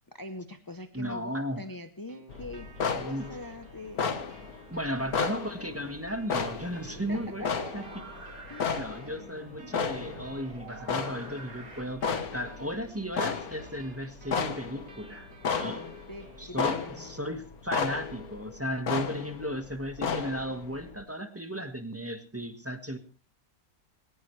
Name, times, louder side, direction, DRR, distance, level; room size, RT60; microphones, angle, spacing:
voice 1, 0.1-4.2 5.0-5.3 5.6-5.7 7.1-7.8 8.5-9.4 15.6-17.3, left 2 dB, 20° left, 8 dB, 0.5 m, -44 dB
voice 2, 0.9-1.6 2.9-3.3 4.7-7.4 7.7-8.0 8.7-15.3 15.6-15.8 16.4-23.0, equal, 10° right, 8 dB, 1.4 m, -35 dB
sound 1, 2.1-17.1, right 3 dB, 90° right, 2.7 m, -55 dB
sound 2, 2.3-9.5 9.7-21.0, left 5 dB, 60° left, 1.9 m, -34 dB
sound 3, 6.7-12.3, right 3 dB, 55° right, 3.6 m, -47 dB
19.0 x 18.5 x 3.3 m, 0.33 s
omnidirectional pair, 1.8 m